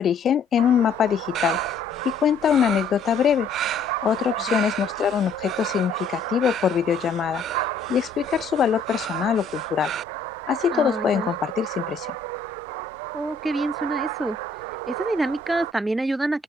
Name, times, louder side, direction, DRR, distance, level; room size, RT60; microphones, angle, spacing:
voice 1, 0.0-1.6 2.0-3.5 4.0-7.4 7.9-9.9 10.5-12.1, left 9 dB, 25° left, 0.3 m, -23 dB
sound 1, 0.6-15.7, right 28 dB, 60° right, 2.5 m, -33 dB
sound 2, 1.3-10.0, right 11 dB, 30° right, 1.7 m, -34 dB
voice 2, 10.7-11.3 13.1-14.4 14.9-16.4, right 2 dB, 5° right, 1.0 m, -27 dB
open air
supercardioid pair, 150°, 0 cm